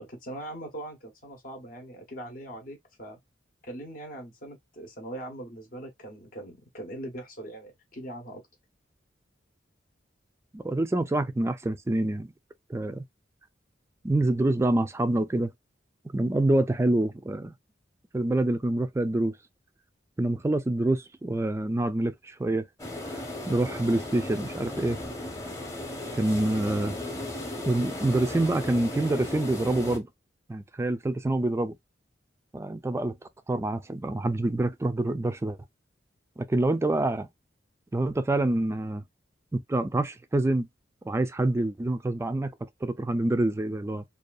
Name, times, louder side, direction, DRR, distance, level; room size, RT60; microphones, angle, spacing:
voice 1, 0.0-3.2 3.6-8.4, right 1 dB, 50° left, 0.7 m, -41 dB
voice 2, 10.5-12.3 12.7-13.0 14.0-15.5 16.1-17.5 18.1-19.3 20.2-22.6 23.1-25.0 26.1-27.0 27.7-30.1 30.5-31.7 32.5-33.2 33.5-35.6 36.4-37.3 37.9-39.0 39.5-40.7 41.0-42.5 42.8-44.0, right 2 dB, 15° right, 0.3 m, -26 dB
sound 1, 22.8-30.0, left 1 dB, 20° left, 0.8 m, -36 dB
2.6 x 2.3 x 2.2 m
head